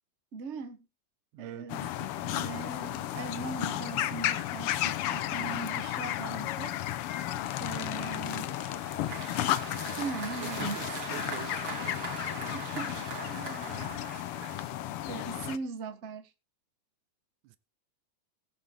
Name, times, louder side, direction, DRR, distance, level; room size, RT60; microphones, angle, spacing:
voice 1, 0.3-0.8 1.4-1.9 2.1-6.9 7.6-8.5 10.0-10.8 12.5-14.0 15.1-16.3, right 4 dB, 60° right, 0.7 m, -40 dB
voice 2, 1.3-1.7 5.3-5.6 10.3-12.0 12.9-13.2 13.5-14.0 14.7-14.8 17.4-17.6, right 14 dB, 85° right, 2.1 m, -47 dB
sound 1, 1.7-15.6, left 13 dB, 80° left, 1.3 m, -33 dB
Applause, 8.0-15.1, right 3 dB, 45° right, 2.9 m, -41 dB
20.0 x 6.7 x 3.5 m
omnidirectional pair, 3.3 m